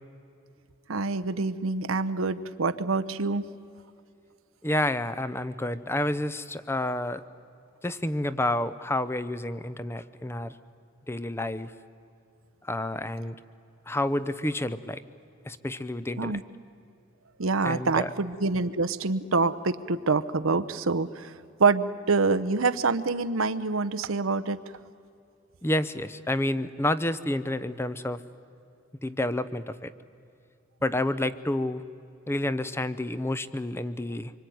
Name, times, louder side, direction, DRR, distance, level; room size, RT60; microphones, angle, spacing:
voice 1, 0.9-3.4 16.2-16.4 17.4-21.3 21.6-24.6, right 4 dB, 90° right, 10 dB, 0.9 m, -26 dB
voice 2, 4.6-7.2 7.8-10.6 11.1-11.7 12.6-13.4 13.9-15.0 15.5-16.4 17.6-18.1 25.6-28.2 29.0-29.9 30.8-31.8 32.3-34.3, left 1 dB, 10° left, 14 dB, 0.7 m, -29 dB
25.5 x 24.5 x 9.4 m, 2.6 s
head